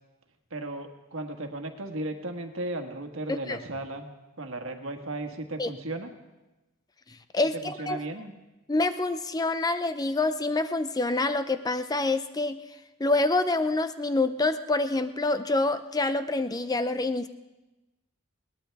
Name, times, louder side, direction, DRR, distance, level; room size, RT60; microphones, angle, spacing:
voice 1, 0.5-4.1 4.4-6.1 7.5-8.3, right 2 dB, 70° right, 5 dB, 1.6 m, -35 dB
voice 2, 7.3-8.0 8.7-12.6 13.0-17.3, left 2 dB, 20° left, 11 dB, 0.5 m, -26 dB
21.0 x 18.5 x 3.5 m, 1.0 s
head